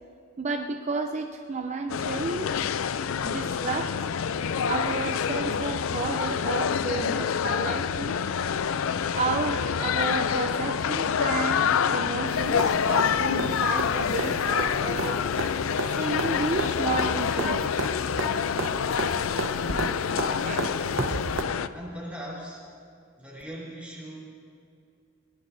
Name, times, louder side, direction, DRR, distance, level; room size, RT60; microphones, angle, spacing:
voice 1, 0.4-2.5 3.2-3.9 4.6-8.2 9.1-15.3 15.9-17.9 20.4-20.6 21.0-21.2, right 3 dB, 35° right, 4 dB, 0.5 m, -32 dB
sound 1, 1.9-21.7, left 7 dB, 75° left, 0.4 m, -27 dB
sound 2, 12.3-21.4 23.4-23.5, right 2 dB, 80° right, 1.0 m, -34 dB
voice 2, 20.2-20.6 21.7-22.6 23.2-24.2, right 1 dB, 5° right, -5 dB, 4.0 m, -40 dB
21.0 x 19.5 x 2.7 m, 2.4 s
head